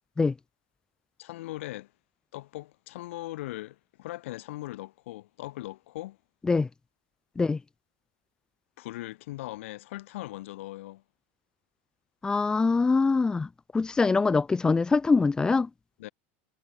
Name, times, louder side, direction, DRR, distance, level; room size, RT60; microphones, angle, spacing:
voice 1, 1.2-1.9 2.3-6.2 8.8-11.0 16.0-16.1, left 17 dB, 85° left, 4.4 m, -39 dB
voice 2, 12.2-15.7, left 4 dB, 10° left, 0.5 m, -24 dB
supercardioid pair, 145°, 7 cm